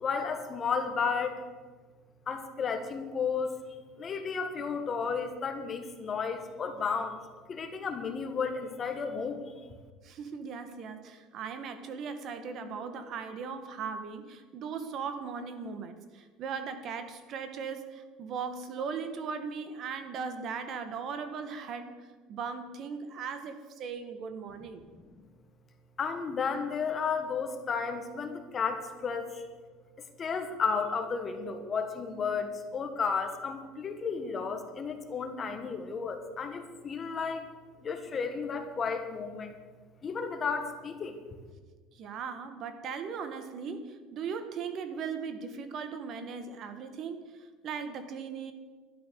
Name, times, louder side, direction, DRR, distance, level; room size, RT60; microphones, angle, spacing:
voice 1, 0.0-1.4 2.3-3.6 4.0-7.2 7.5-9.4 26.0-29.2 30.2-32.5 32.7-37.4 37.8-39.5 40.0-41.1, left 5 dB, 25° left, 7 dB, 1.4 m, -33 dB
voice 2, 10.0-24.8 41.9-48.5, right 6 dB, 40° right, 9 dB, 1.4 m, -38 dB
12.0 x 12.0 x 6.7 m, 1.4 s
cardioid pair, 145°, 0 cm